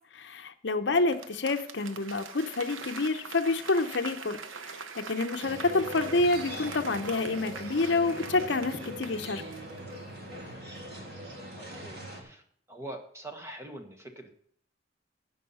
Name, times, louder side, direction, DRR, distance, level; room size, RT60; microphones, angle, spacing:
voice 1, 0.1-1.2 1.4-4.4 4.6-9.4, left 3 dB, 65° left, 8 dB, 0.7 m, -28 dB
Applause / Crowd, 0.9-10.4 10.7-10.8, right 5 dB, 90° right, 0.9 m, -43 dB
sound 1, 5.4-12.2, equal, 55° right, 3.0 m, -42 dB
voice 2, 11.6-12.4 12.7-14.3, right 1 dB, 15° right, 4 dB, 1.2 m, -44 dB
15.0 x 5.5 x 5.6 m, 0.64 s
head